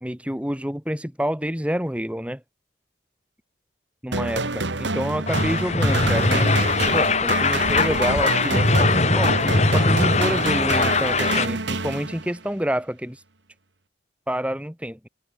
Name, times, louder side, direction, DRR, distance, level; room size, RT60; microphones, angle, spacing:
voice 1, 0.0-2.4 4.0-9.4 9.7-13.2 14.3-15.1, equal, 5° right, 2.2 m, -28 dB
sound 1, 4.1-12.5, right 3 dB, 80° right, 2.2 m, -27 dB
sound 2, 5.3-11.5, left 3 dB, 35° left, 2.7 m, -21 dB
head